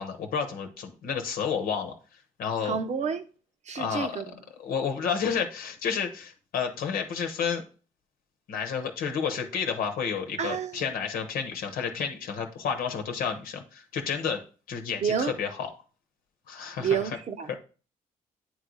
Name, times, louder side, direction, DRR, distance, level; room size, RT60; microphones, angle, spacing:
voice 1, 0.0-1.9 2.4-2.8 3.7-4.2 4.6-7.6 8.5-14.4 14.7-15.7 16.5-17.0, left 6 dB, 85° left, 1.0 m, -30 dB
voice 2, 2.6-3.3 3.6-4.3 10.4-10.8 15.0-15.3 16.8-17.6, right 7 dB, 50° right, 0.8 m, -29 dB
8.8 x 3.2 x 3.9 m
cardioid pair, 80°, 15 cm